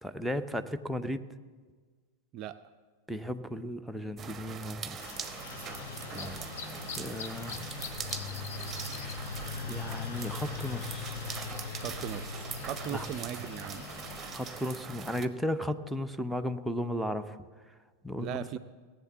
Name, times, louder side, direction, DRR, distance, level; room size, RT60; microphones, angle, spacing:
voice 1, 0.0-1.3 3.1-5.0 6.1-6.4 7.0-7.7 9.7-11.2 12.9-13.1 14.3-17.7 18.0-18.6, left 1 dB, ahead, 6 dB, 0.7 m, -35 dB
sound 1, 4.2-15.3, right 6 dB, 20° right, 1.0 m, -42 dB
sound 2, 4.9-14.8, left 6 dB, 60° left, 1.0 m, -41 dB
voice 2, 6.1-6.5 11.7-13.9 18.2-18.6, right 11 dB, 40° right, 12 dB, 0.4 m, -39 dB
17.5 x 7.9 x 7.0 m, 1.5 s
figure-of-eight pair, 90°, 0 cm